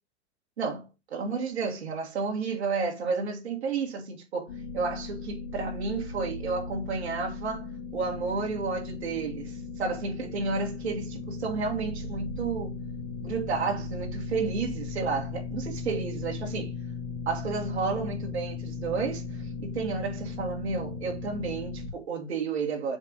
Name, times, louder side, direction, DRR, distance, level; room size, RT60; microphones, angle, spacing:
voice 1, 0.6-7.7 7.9-12.8 13.2-16.7 17.3-23.0, right 4 dB, 80° right, 1.9 m, -31 dB
sound 1, 4.5-21.9, left 4 dB, 85° left, 2.6 m, -37 dB
7.2 x 2.6 x 5.0 m
hypercardioid pair, 90°, 33 cm